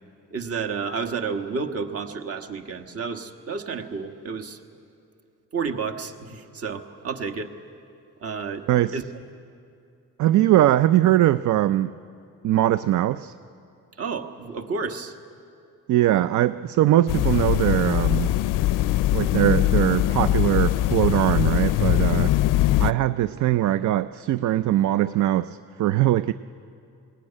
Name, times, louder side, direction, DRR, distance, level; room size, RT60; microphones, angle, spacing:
voice 1, 0.3-4.6 5.5-7.5 8.2-8.7 8.9-9.0 14.0-15.1, right 5 dB, 45° right, 5 dB, 1.6 m, -31 dB
voice 2, 8.7-9.0 10.2-11.9 12.4-13.3 15.9-18.3 19.1-22.4 22.8-26.3, right 13 dB, 65° right, 14 dB, 0.5 m, -21 dB
sound 1, 17.1-22.9, left 14 dB, 75° left, 0.5 m, -21 dB
20.5 x 17.5 x 9.9 m, 2.5 s
cardioid pair, 115°, 32 cm